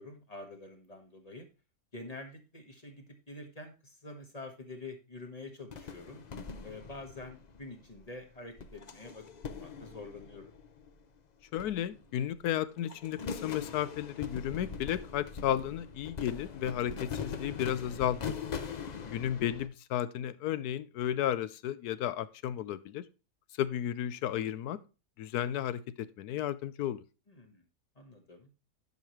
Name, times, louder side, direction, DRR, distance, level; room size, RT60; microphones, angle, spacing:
voice 1, 0.0-1.5 1.9-6.2 6.6-10.5 19.1-19.3 27.3-27.6 27.9-28.5, left 2 dB, 25° left, 5 dB, 1.3 m, -47 dB
sound 1, 5.7-8.0 8.6-11.1 11.6-12.4 12.7-19.7, left 6 dB, 55° left, 0.4 m, -42 dB
voice 2, 11.5-18.2 19.0-23.0 23.6-24.8 25.2-25.8 26.2-27.0, left 11 dB, 80° left, 16 dB, 1.1 m, -33 dB
11.0 x 5.3 x 3.1 m, 0.31 s
omnidirectional pair, 1.7 m